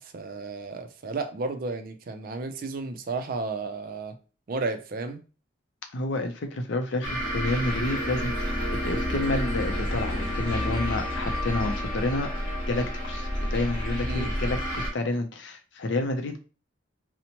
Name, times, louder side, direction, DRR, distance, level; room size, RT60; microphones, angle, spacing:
voice 1, 0.0-4.2 4.5-5.2 14.1-14.2, right 3 dB, 50° right, 0.4 m, -33 dB
voice 2, 5.9-12.3 12.7-16.4, left 2 dB, 70° left, 0.5 m, -29 dB
sound 1, 7.0-14.9, equal, 45° left, 1.2 m, -29 dB
2.8 x 2.1 x 2.8 m
head